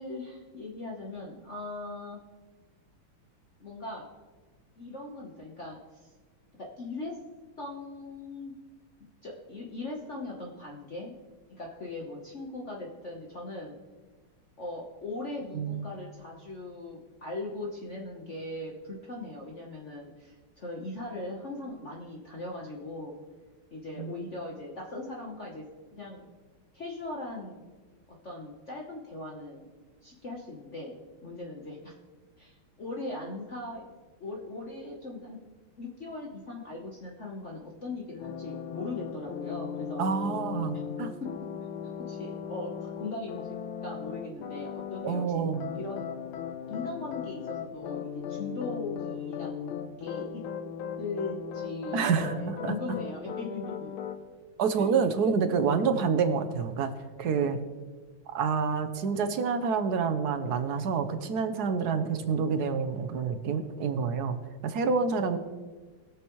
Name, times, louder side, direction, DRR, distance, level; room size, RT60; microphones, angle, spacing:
voice 1, 0.0-2.2 3.6-4.1 4.8-6.1 6.6-7.2 7.6-8.5 9.2-11.2 11.5-13.8 14.6-23.2 23.7-26.2 26.7-27.6 28.2-29.7 30.0-30.9 31.2-31.9 32.4-33.8 34.2-35.4 35.8-40.0 41.2-41.3 41.6-45.5 45.7-46.2 46.7-50.4 51.0-54.0 54.8-55.0 57.2-57.6, left 2 dB, 45° left, -2 dB, 1.1 m, -39 dB
voice 2, 15.5-15.9 24.0-24.1 40.0-41.1 45.0-45.7 51.9-53.0 54.6-56.9 57.2-57.6 58.3-64.4 64.6-65.4, right 5 dB, 65° right, 8 dB, 1.0 m, -28 dB
sound 1, 38.2-45.3 45.5-54.2, left 8 dB, 75° left, 1.6 m, -37 dB
21.0 x 7.0 x 3.1 m, 1.4 s
omnidirectional pair, 2.3 m